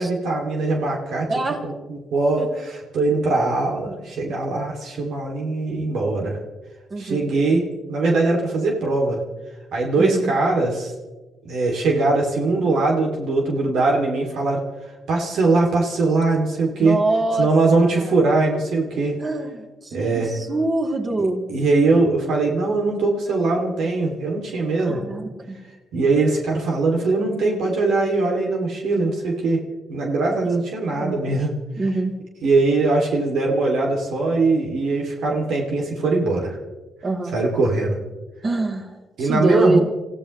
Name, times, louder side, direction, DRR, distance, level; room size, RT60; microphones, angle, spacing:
voice 1, 0.0-1.3 1.6-6.4 7.0-9.2 9.7-10.9 11.4-14.6 15.1-17.0 17.4-19.2 19.9-20.3 21.5-25.0 25.9-29.6 29.9-31.5 32.4-36.6 37.3-38.0 39.2-39.8, right 3 dB, 75° right, 0 dB, 3.0 m, -21 dB
voice 2, 1.3-1.6 2.4-2.5 3.8-4.1 6.9-7.3 10.0-10.3 16.8-17.5 17.7-18.1 19.2-21.4 24.8-25.6 31.0-31.3 31.8-32.1 37.0-37.3 38.4-39.8, right 2 dB, 30° right, 1 dB, 3.2 m, -24 dB
28.0 x 15.5 x 3.3 m, 1.2 s
cardioid pair, 90°, 0 cm